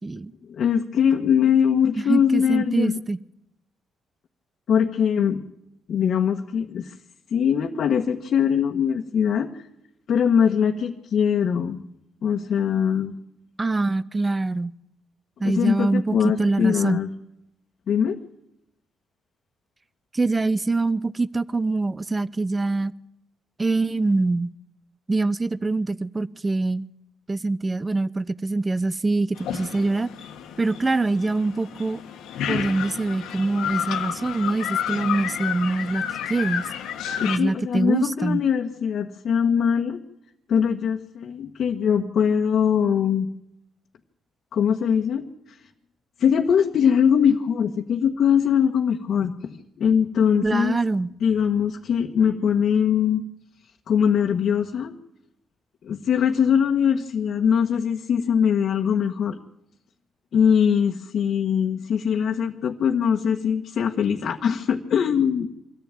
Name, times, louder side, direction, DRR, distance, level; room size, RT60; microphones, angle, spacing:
voice 1, 0.5-3.0 4.7-5.4 5.9-6.9 7.3-9.6 10.1-11.8 12.2-13.1 15.4-17.1 17.9-18.2 37.2-40.0 40.5-43.3 44.5-45.6 46.2-50.8 51.2-53.2 53.9-54.9 55.8-59.4 60.3-65.5, left 7 dB, 65° left, 2 dB, 1.5 m, -22 dB
voice 2, 2.0-3.2 13.6-14.7 15.4-17.0 20.1-22.9 23.6-24.5 25.1-26.9 27.3-30.1 30.6-32.0 32.5-36.0 36.3-36.7 37.2-38.4 50.4-51.1, right 3 dB, 20° right, 17 dB, 0.7 m, -24 dB
sound 1, 29.4-37.4, left 9 dB, 85° left, 1.6 m, -31 dB
24.0 x 14.5 x 9.1 m, 0.81 s
cardioid pair, 90°, 0 cm